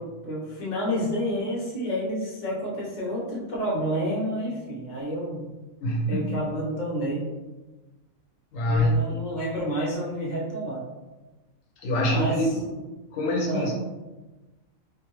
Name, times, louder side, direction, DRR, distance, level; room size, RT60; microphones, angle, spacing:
voice 1, 0.0-5.4 6.0-7.3 8.6-10.9 12.0-12.6 13.4-13.7, equal, 40° left, -5 dB, 0.8 m, -29 dB
voice 2, 5.8-6.3 8.5-8.9 11.8-12.5 13.1-13.7, left 1 dB, 70° left, -1 dB, 1.1 m, -24 dB
2.6 x 2.5 x 3.0 m, 1.1 s
omnidirectional pair, 1.4 m